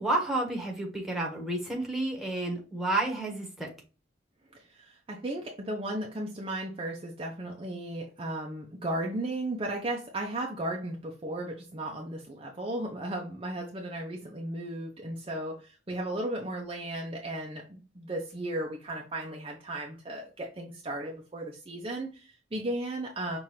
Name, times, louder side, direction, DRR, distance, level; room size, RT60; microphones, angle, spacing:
voice 1, 0.0-3.7, right 2 dB, ahead, -1 dB, 1.1 m, -30 dB
voice 2, 4.5-23.4, right 1 dB, 30° right, 0 dB, 0.6 m, -35 dB
5.8 x 2.5 x 3.2 m, 0.35 s
head